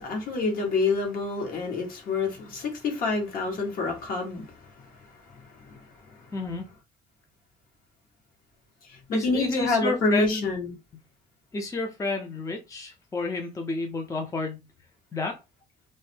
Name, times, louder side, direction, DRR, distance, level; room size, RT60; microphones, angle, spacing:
voice 1, 0.0-4.9 5.3-5.8 8.8-10.8, left 3 dB, 60° left, 1.3 m, -27 dB
voice 2, 6.3-6.6 9.1-10.5 11.5-14.6 15.1-15.4, left 3 dB, 20° left, 0.5 m, -30 dB
2.6 x 2.1 x 3.3 m
cardioid pair, 110°, 17 cm